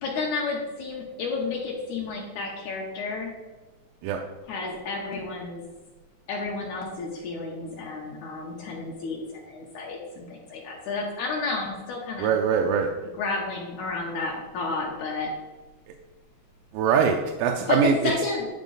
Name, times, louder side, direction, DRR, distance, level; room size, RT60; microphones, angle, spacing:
voice 1, 0.0-3.3 4.5-5.6 6.3-12.3 13.1-15.3 17.7-18.5, left 3 dB, 70° left, -1 dB, 2.0 m, -31 dB
voice 2, 12.2-12.9 16.7-17.9, right 7 dB, 85° right, 3 dB, 2.3 m, -22 dB
10.5 x 4.3 x 3.9 m, 1.2 s
omnidirectional pair, 4.1 m